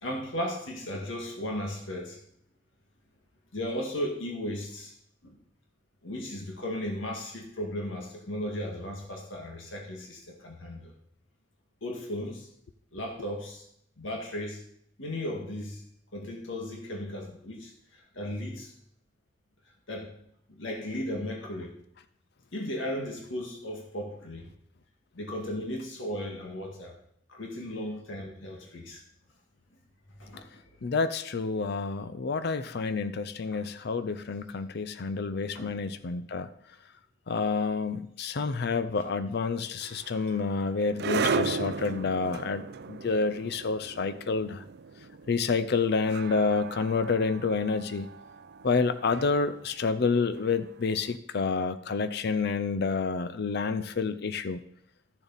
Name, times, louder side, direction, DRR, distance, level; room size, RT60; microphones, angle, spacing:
voice 1, 0.0-2.2 3.5-4.9 5.2-5.4 6.0-10.9 11.8-12.5 12.9-13.7 14.0-14.6 15.0-15.8 16.1-18.7 19.9-20.1 20.5-21.8 22.5-24.5 25.1-27.0 27.3-29.0 30.2-30.6 32.5-32.8 33.5-33.6 35.5-35.7, left 1 dB, 80° left, 1 dB, 1.9 m, -36 dB
voice 2, 30.8-36.5 37.3-44.6 45.3-48.1 48.6-54.6, left 4 dB, 60° left, 12 dB, 0.5 m, -29 dB
sound 1, 39.8-50.9, right 5 dB, 60° right, 0.5 m, -36 dB
13.5 x 7.0 x 4.1 m, 0.72 s
head